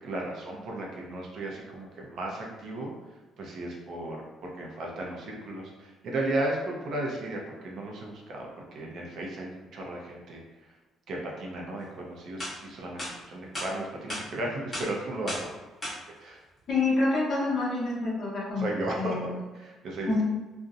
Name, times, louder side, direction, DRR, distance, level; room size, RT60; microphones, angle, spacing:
voice 1, 0.0-2.9 3.4-4.2 4.4-10.7 11.1-15.5 16.2-16.4 18.6-19.3 19.5-20.2, right 1 dB, 50° right, -1 dB, 0.5 m, -35 dB
sound 1, 11.9-12.0 12.4-12.5 13.0-13.1 13.5-13.7 14.1-14.2 14.7-14.9 15.3-15.5 15.8-15.9, left 1 dB, 15° left, 0.9 m, -34 dB
voice 2, 16.7-18.7 19.0-19.4 20.1-20.2, left 3 dB, 40° left, -5 dB, 0.8 m, -27 dB
2.6 x 2.0 x 2.4 m, 1.2 s
cardioid pair, 170°, 0 cm